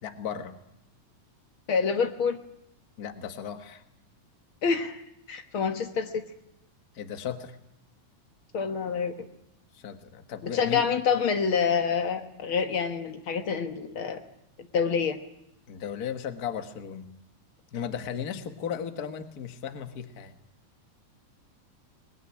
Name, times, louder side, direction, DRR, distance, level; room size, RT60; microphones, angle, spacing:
voice 1, 0.0-0.6 3.0-3.8 6.9-7.6 9.7-10.9 15.7-17.1 17.7-20.3, left 8 dB, 75° left, 8 dB, 0.8 m, -36 dB
voice 2, 1.7-2.4 4.6-5.0 5.3-6.1 8.5-9.1 10.4-14.2 14.7-15.2, left 6 dB, 55° left, 7 dB, 1.5 m, -27 dB
24.0 x 20.5 x 9.9 m, 0.81 s
omnidirectional pair, 4.0 m